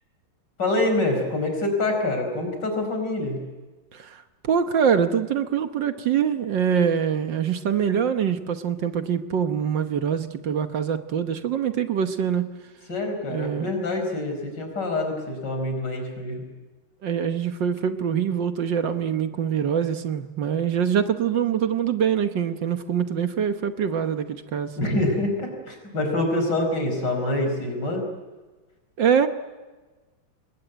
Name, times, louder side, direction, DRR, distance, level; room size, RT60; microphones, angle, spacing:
voice 1, 0.6-3.5 12.9-16.5 24.8-28.0, left 2 dB, 55° left, 4 dB, 5.6 m, -26 dB
voice 2, 3.9-12.5 13.3-13.7 17.0-24.7 29.0-29.3, right 8 dB, 65° right, 9 dB, 1.8 m, -24 dB
27.0 x 21.0 x 9.3 m, 1.3 s
omnidirectional pair, 2.2 m